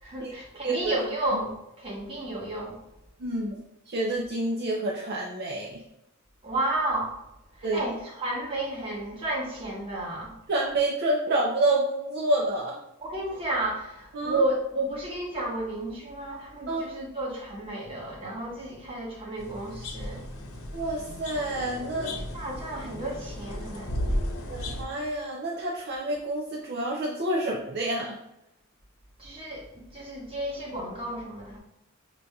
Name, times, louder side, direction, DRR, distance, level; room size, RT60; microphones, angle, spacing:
voice 1, 0.0-2.8 6.4-7.2 7.5-10.3 13.0-20.3 22.3-24.8 29.2-31.6, right 1 dB, 25° right, -3 dB, 1.1 m, -32 dB
voice 2, 0.6-0.9 1.3-1.4 3.2-3.6 3.9-5.8 7.6-7.8 10.5-12.8 14.1-14.4 16.7-16.9 20.7-22.1 24.5-28.2, right 1 dB, 50° right, -2 dB, 0.5 m, -28 dB
sound 1, 19.4-24.8, left 1 dB, 85° left, 0.8 m, -34 dB
6.0 x 2.7 x 2.3 m, 0.86 s
head